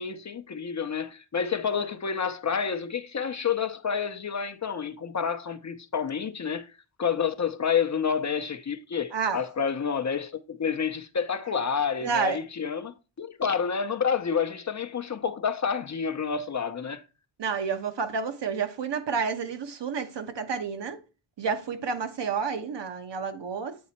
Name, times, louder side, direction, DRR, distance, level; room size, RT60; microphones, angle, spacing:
voice 1, 0.0-6.7 7.0-17.0, left 6 dB, 35° left, 0.7 m, -29 dB
voice 2, 9.1-9.4 12.0-12.4 17.4-21.0 21.4-23.8, right 5 dB, 55° right, 1.2 m, -30 dB
8.5 x 4.1 x 4.2 m
wide cardioid pair, 120°, 49 cm